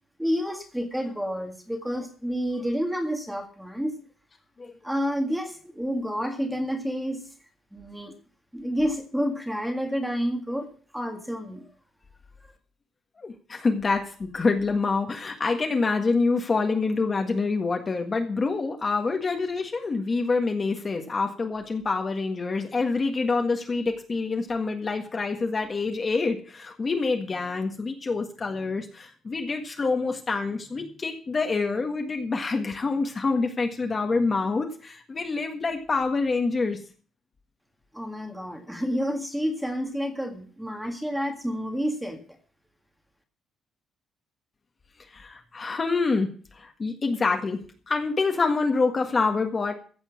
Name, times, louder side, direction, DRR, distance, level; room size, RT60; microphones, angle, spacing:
voice 1, 0.2-3.9 4.8-7.2 7.7-8.1 8.5-11.7 37.9-42.2, equal, ahead, 4 dB, 1.8 m, -29 dB
voice 2, 13.2-36.8 45.1-47.6 47.9-49.7, left 4 dB, 25° left, 4 dB, 1.6 m, -26 dB
15.0 x 7.4 x 7.2 m, 0.42 s
cardioid pair, 175°, 0 cm